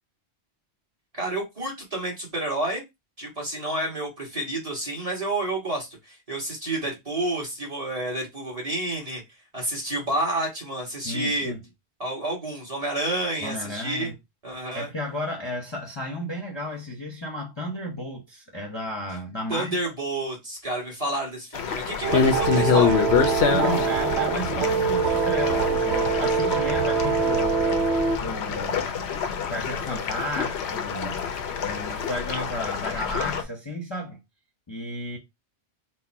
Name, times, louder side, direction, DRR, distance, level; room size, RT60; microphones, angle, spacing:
voice 1, 1.1-2.8 3.2-9.2 9.5-11.5 12.0-14.1 14.4-14.9 19.5-23.0, right 1 dB, 30° right, 1.8 m, -29 dB
voice 2, 11.0-11.6 13.4-14.2 14.7-19.8 23.5-27.9 28.2-28.9 29.5-31.3 31.6-34.2 34.7-35.2, left 1 dB, 25° left, 0.8 m, -33 dB
sound 1, 21.5-33.4, left 7 dB, 70° left, 0.9 m, -26 dB
sound 2, 22.0-28.2, right 6 dB, 70° right, 0.8 m, -24 dB
4.2 x 2.2 x 4.5 m
omnidirectional pair, 1.2 m